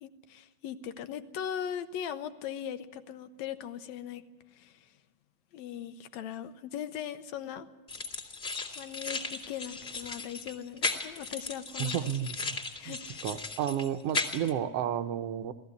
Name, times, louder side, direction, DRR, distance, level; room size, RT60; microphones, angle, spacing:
voice 1, 0.0-4.2 4.5-4.9 5.5-7.7 8.8-12.1 12.8-13.2, left 9 dB, 70° left, 10 dB, 1.9 m, -39 dB
sound 1, 7.9-14.5, left 3 dB, 20° left, 2.2 m, -36 dB
voice 2, 11.8-12.6 12.9-13.0 13.2-15.5, right 10 dB, 70° right, 7 dB, 1.5 m, -32 dB
19.0 x 14.5 x 9.5 m, 1.3 s
omnidirectional pair, 3.5 m